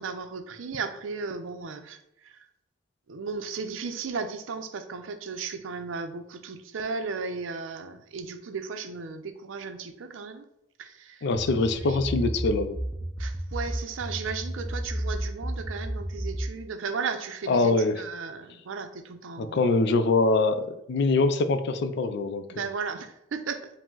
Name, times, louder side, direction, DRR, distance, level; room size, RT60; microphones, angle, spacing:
voice 1, 0.0-2.5 3.1-10.5 10.8-11.3 11.8-12.1 13.2-19.6 22.5-23.8, right 5 dB, 85° right, 8 dB, 0.5 m, -35 dB
voice 2, 11.2-12.8 17.5-18.0 19.4-22.6, left 3 dB, 60° left, 10 dB, 0.4 m, -24 dB
sound 1, 11.3-16.6, right 1 dB, 10° right, 0.3 m, -32 dB
4.9 x 2.1 x 3.8 m, 0.80 s
head